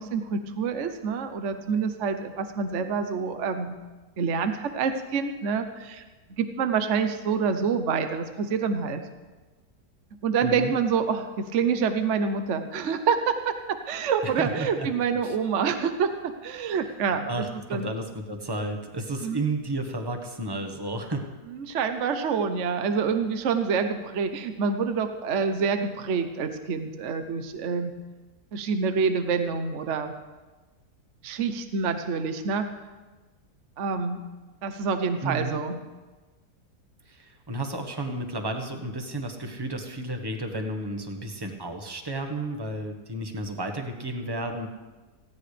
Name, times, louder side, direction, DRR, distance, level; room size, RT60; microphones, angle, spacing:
voice 1, 0.0-3.7 4.2-6.0 6.4-9.0 10.2-17.9 19.2-19.4 21.6-27.9 28.5-30.1 31.2-32.7 33.8-34.2 34.6-35.8, right 5 dB, 55° right, 8 dB, 1.1 m, -27 dB
voice 2, 10.4-10.7 14.2-14.9 15.2-15.3 17.2-21.3 35.2-35.6 37.1-44.7, right 1 dB, 15° right, 4 dB, 1.3 m, -32 dB
18.0 x 16.0 x 3.4 m, 1.2 s
omnidirectional pair, 1.7 m